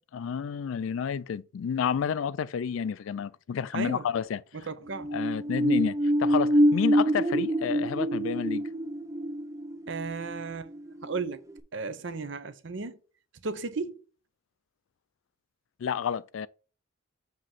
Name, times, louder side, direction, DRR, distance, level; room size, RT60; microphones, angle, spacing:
voice 1, 0.1-4.4 5.1-8.7 15.8-16.5, left 7 dB, 75° left, 0.3 m, -30 dB
voice 2, 3.7-4.1 4.5-5.1 9.9-10.7 11.0-11.4 11.7-13.0 13.4-14.0, right 4 dB, 60° right, 0.7 m, -34 dB
sound 1, 4.9-11.2 11.6-11.7, equal, 15° right, 0.4 m, -26 dB
7.5 x 2.9 x 5.8 m
head